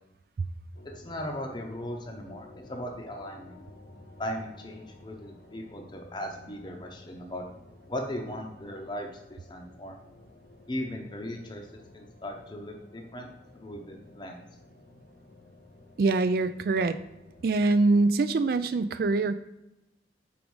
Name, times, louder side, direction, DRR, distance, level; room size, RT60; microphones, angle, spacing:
sound 1, 0.7-18.1, left 2 dB, 65° left, 0.8 m, -53 dB
voice 1, 0.9-3.6 4.2-7.4 7.9-10.0 10.7-11.7 11.9-13.3 13.5-14.4, left 1 dB, 25° left, 1 dB, 0.7 m, -38 dB
voice 2, 16.0-17.0 17.4-19.3, right 3 dB, 55° right, 11 dB, 0.3 m, -24 dB
4.9 x 4.7 x 5.3 m, 0.93 s
head